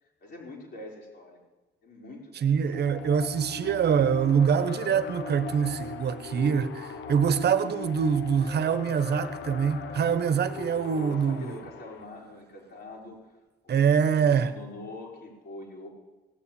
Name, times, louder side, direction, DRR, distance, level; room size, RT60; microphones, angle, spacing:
voice 1, 0.2-1.4 1.8-2.5 10.9-13.3 13.6-13.8 14.1-15.9, left 2 dB, 55° left, 4.5 m, -44 dB
voice 2, 2.4-11.6 13.7-14.5, right 7 dB, 55° right, 1.1 m, -24 dB
sound 1, 2.7-12.0, left 5 dB, 75° left, 1.2 m, -39 dB
17.0 x 7.1 x 8.7 m
cardioid pair, 90°, 20 cm